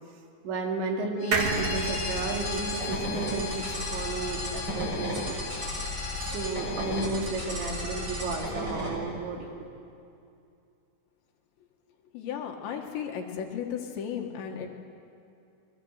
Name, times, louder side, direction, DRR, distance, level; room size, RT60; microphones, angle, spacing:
voice 1, 0.4-5.4 6.2-9.7, right 3 dB, 70° right, 1 dB, 4.7 m, -33 dB
Bowed string instrument, 1.2-7.1, left 8 dB, 85° left, 3.7 m, -39 dB
sound 1, 1.3-4.8 5.2-5.3 5.5-5.6, right 3 dB, 50° right, 1.7 m, -33 dB
sound 2, 1.4-8.9, equal, 20° right, 7.0 m, -34 dB
voice 2, 12.1-14.7, left 8 dB, 70° left, 2 dB, 3.8 m, -35 dB
29.5 x 22.0 x 8.2 m, 2.5 s
omnidirectional pair, 5.7 m